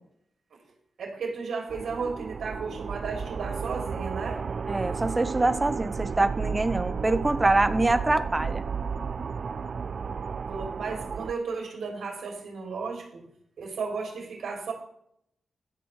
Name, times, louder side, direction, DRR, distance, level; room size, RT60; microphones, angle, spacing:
voice 1, 1.0-4.4 10.5-13.2 13.6-14.7, right 4 dB, 85° right, 0 dB, 2.8 m, -34 dB
sound 1, 1.7-11.3, right 5 dB, 55° right, 0.4 m, -33 dB
voice 2, 4.7-8.6, right 2 dB, 20° right, 11 dB, 0.8 m, -24 dB
15.5 x 10.5 x 3.2 m, 0.72 s
wide cardioid pair, 130°, 0 cm